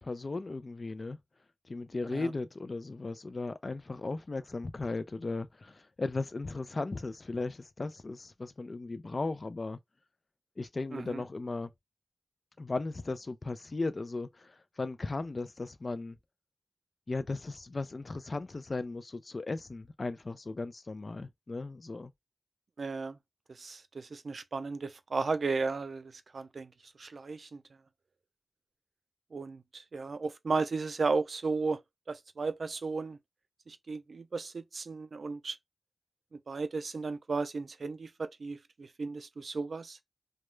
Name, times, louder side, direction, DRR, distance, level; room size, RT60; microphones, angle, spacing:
voice 1, 0.0-1.2 1.7-9.8 10.6-11.7 12.6-16.2 17.1-22.1, left 3 dB, 55° left, 0.3 m, -36 dB
voice 2, 10.9-11.2 22.8-23.2 23.5-26.7 27.0-27.6 29.3-31.8 32.1-33.2 33.7-35.6 36.3-40.0, right 4 dB, 85° right, 0.3 m, -35 dB
2.2 x 2.0 x 3.0 m
wide cardioid pair, 80°, 0 cm